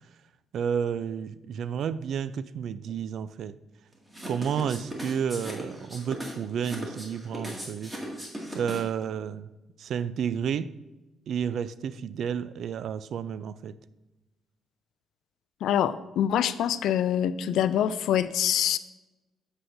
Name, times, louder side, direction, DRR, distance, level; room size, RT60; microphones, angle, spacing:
voice 1, 0.5-3.6 4.3-7.9 8.5-9.5 9.8-10.7 11.3-13.8, right 7 dB, 65° right, 16 dB, 0.3 m, -31 dB
sound 1, 4.1-9.0, equal, 15° right, 2.0 m, -38 dB
voice 2, 15.6-18.8, left 10 dB, 80° left, 15 dB, 0.3 m, -25 dB
8.1 x 7.6 x 2.6 m, 1.1 s
cardioid pair, 90°, 0 cm